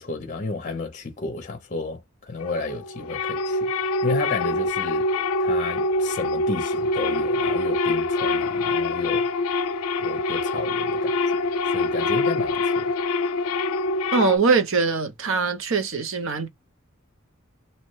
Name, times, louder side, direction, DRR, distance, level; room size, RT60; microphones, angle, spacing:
voice 1, 0.0-2.0 2.3-3.7 4.0-5.0 5.4-9.3 10.0-11.1 11.7-12.9, left 3 dB, 35° left, 0.6 m, -32 dB
sound 1, 2.4-14.4, left 2 dB, 85° left, 0.4 m, -24 dB
voice 2, 14.1-16.5, right 4 dB, 65° right, 0.7 m, -22 dB
2.8 x 2.1 x 3.0 m
head